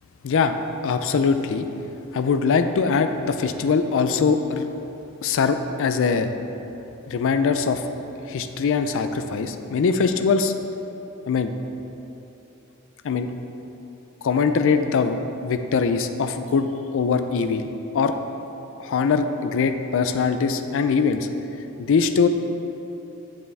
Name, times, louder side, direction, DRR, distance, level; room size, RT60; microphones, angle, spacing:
voice 1, 0.2-0.6 0.8-1.7 2.1-4.7 5.2-6.3 7.1-7.8 8.3-10.5 11.3-11.5 13.0-13.3 14.2-15.2 15.4-16.7 16.9-17.7 17.9-18.1 18.8-21.3 21.9-22.3, left 5 dB, 65° left, 9 dB, 0.4 m, -22 dB
7.9 x 6.9 x 3.3 m, 3.0 s
head